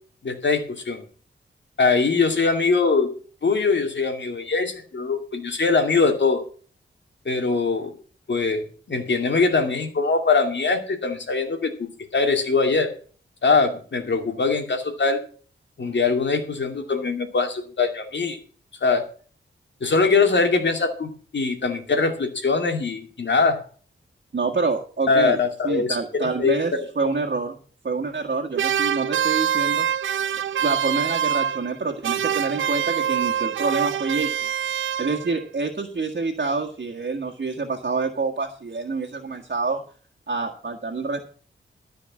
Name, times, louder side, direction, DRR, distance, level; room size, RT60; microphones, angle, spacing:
voice 1, 0.2-1.0 1.8-3.1 3.4-6.4 7.3-7.9 8.3-12.9 13.4-15.2 15.8-18.4 18.8-19.1 19.8-23.6 25.1-26.6, left 4 dB, 60° left, 5 dB, 2.4 m, -22 dB
voice 2, 24.3-27.6 27.8-29.9 30.6-34.5 35.0-39.8 40.3-41.3, right 4 dB, 50° right, 1 dB, 1.7 m, -27 dB
sound 1, 28.6-35.4, right 9 dB, 70° right, 0.5 m, -25 dB
13.5 x 5.3 x 7.3 m, 0.42 s
cardioid pair, 70°, 21 cm